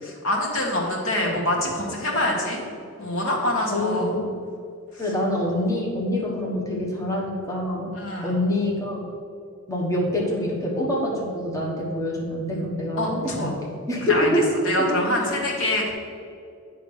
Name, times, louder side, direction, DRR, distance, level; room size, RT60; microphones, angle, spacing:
voice 1, 0.0-2.6 3.0-4.1 8.0-8.4 13.0-13.6 14.1-14.3 14.6-15.9, left 1 dB, 70° left, -2 dB, 1.6 m, -25 dB
voice 2, 3.7-4.3 5.0-7.9 8.2-9.0 9.7-14.5 14.7-15.3, left 1 dB, 15° left, -4 dB, 1.2 m, -26 dB
8.3 x 3.6 x 6.5 m, 2.5 s
head